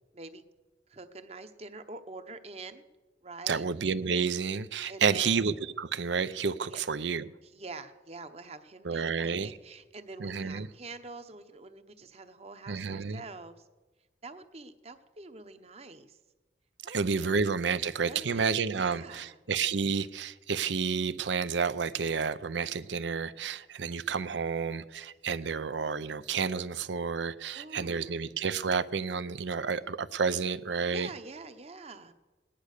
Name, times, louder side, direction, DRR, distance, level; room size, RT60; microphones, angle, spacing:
voice 1, 0.9-2.8 3.2-3.7 4.9-5.3 6.7-6.8 7.4-13.5 14.2-16.2 16.8-17.3 18.0-18.4 18.7-19.4 27.5-28.2 30.9-32.1, right 3 dB, 35° right, 0.9 m, -46 dB
voice 2, 3.5-7.3 8.8-9.5 10.2-10.7 12.7-13.2 16.9-31.1, right 5 dB, 85° right, 0.6 m, -30 dB
18.5 x 10.5 x 6.6 m
head